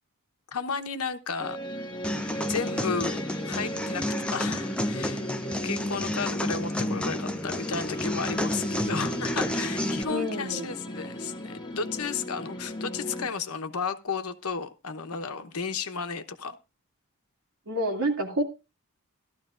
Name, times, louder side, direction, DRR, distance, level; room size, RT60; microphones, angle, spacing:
voice 1, 0.5-1.9 2.5-3.2 3.4-4.1 4.3-5.2 5.6-16.6, left 5 dB, 90° left, 9 dB, 1.0 m, -33 dB
sound 1, 1.4-13.3, left 1 dB, 20° left, 1.1 m, -36 dB
sound 2, 2.0-10.0, left 1 dB, 5° left, 0.7 m, -31 dB
voice 2, 10.1-10.7 17.7-18.4, right 1 dB, 75° right, 2 dB, 2.6 m, -28 dB
15.0 x 12.5 x 2.5 m, 0.28 s
head